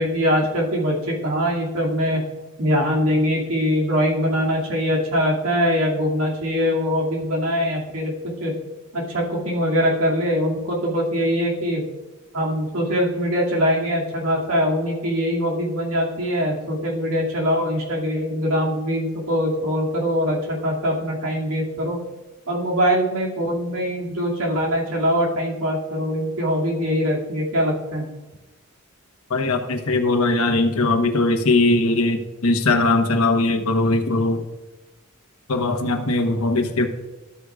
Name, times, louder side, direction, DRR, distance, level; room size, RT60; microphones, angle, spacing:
voice 1, 0.0-2.2 2.6-8.1 8.4-8.5 8.9-11.8 12.3-22.0 22.5-28.0, equal, 85° right, -2 dB, 2.5 m, -22 dB
voice 2, 29.3-34.4 35.5-36.9, left 2 dB, 90° left, 4 dB, 1.1 m, -20 dB
12.5 x 8.2 x 2.5 m, 1.1 s
head